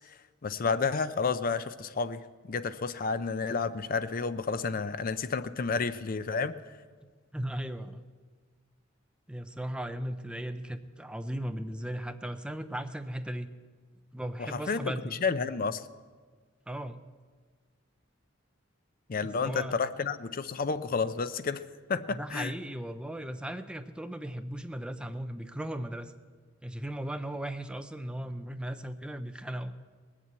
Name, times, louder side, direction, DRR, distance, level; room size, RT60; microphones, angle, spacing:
voice 1, 0.4-2.2 2.5-6.5 14.4-14.9 15.2-15.9 19.1-21.6 21.9-22.5, left 4 dB, 45° left, 13 dB, 0.5 m, -30 dB
voice 2, 7.3-8.0 9.3-13.5 14.1-15.2 16.7-17.0 19.2-19.8 22.1-26.1 26.6-29.7, right 1 dB, 5° right, 8 dB, 0.5 m, -37 dB
20.0 x 7.4 x 8.2 m, 1.5 s
head